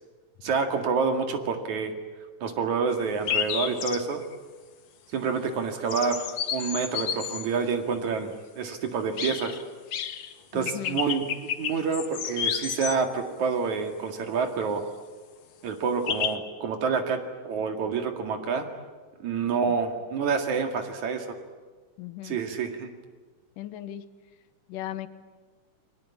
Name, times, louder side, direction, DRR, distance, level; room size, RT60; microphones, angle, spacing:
voice 1, 0.4-1.9 2.4-4.2 5.1-6.2 6.5-9.6 10.5-11.3 11.6-14.8 15.6-18.7 19.2-21.3 22.2-22.9, right 5 dB, 65° right, 5 dB, 3.4 m, -28 dB
sound 1, 2.9-3.0 3.3-4.3 5.9-7.5 9.2-9.6 9.9-10.3 10.7-13.0 16.1-16.4, left 8 dB, 60° left, 2.0 m, -31 dB
voice 2, 10.5-11.0 19.7-19.8 22.0-22.4 23.6-24.1 24.7-25.1, left 13 dB, 90° left, 12 dB, 2.7 m, -37 dB
29.5 x 22.0 x 8.6 m, 1.4 s
omnidirectional pair, 3.7 m